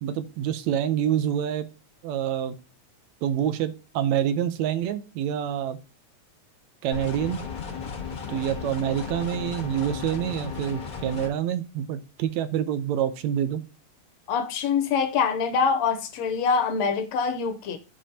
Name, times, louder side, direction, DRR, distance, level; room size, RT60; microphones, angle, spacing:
voice 1, 0.0-1.7 2.0-2.6 3.2-5.8 6.8-7.4 8.3-13.7, right 10 dB, 75° right, 1.8 m, -27 dB
sound 1, 6.9-11.3, left 6 dB, 45° left, 1.3 m, -35 dB
voice 2, 14.3-17.8, left 6 dB, 75° left, 1.8 m, -24 dB
15.5 x 5.2 x 2.7 m
omnidirectional pair, 3.4 m